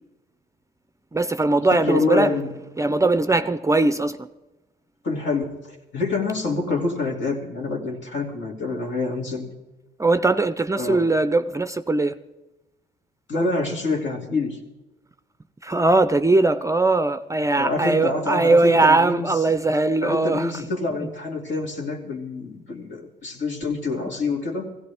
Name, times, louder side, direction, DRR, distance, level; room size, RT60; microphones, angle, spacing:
voice 1, 1.1-2.3 2.7-4.3 10.0-12.2 15.6-20.7 20.9-21.1, right 2 dB, 15° right, 12 dB, 0.5 m, -20 dB
voice 2, 1.7-2.5 5.0-9.5 10.8-11.1 13.3-14.6 17.6-19.3 20.0-24.7, left 3 dB, 70° left, 1 dB, 2.5 m, -26 dB
16.0 x 16.0 x 3.5 m, 1.1 s
cardioid pair, 90°, 20 cm